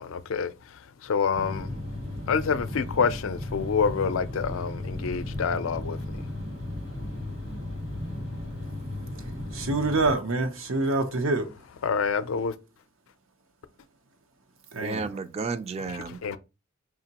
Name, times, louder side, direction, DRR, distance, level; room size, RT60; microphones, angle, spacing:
voice 1, 0.0-1.7 2.3-6.3 8.4-8.5 9.0-9.1 9.4-9.5 11.8-12.6 16.1-16.4, left 6 dB, 90° left, 0.4 m, -28 dB
sound 1, 1.3-10.1, left 1 dB, 70° right, 1.9 m, -35 dB
voice 2, 9.5-11.5 14.7-15.1, right 2 dB, 85° right, 0.7 m, -26 dB
voice 3, 14.8-16.4, right 4 dB, 30° right, 0.3 m, -33 dB
4.9 x 2.9 x 2.8 m
head